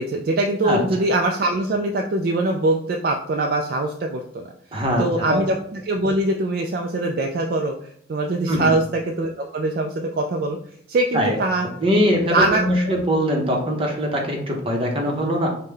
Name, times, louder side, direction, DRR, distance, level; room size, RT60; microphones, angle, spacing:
voice 1, 0.0-4.5 5.0-10.6 10.9-11.7 12.3-12.6, right 2 dB, 50° right, 2 dB, 0.3 m, -22 dB
voice 2, 4.7-5.4 8.5-8.8 11.1-11.4 11.8-15.5, equal, 30° right, 1 dB, 0.8 m, -22 dB
5.3 x 2.2 x 3.3 m, 0.65 s
head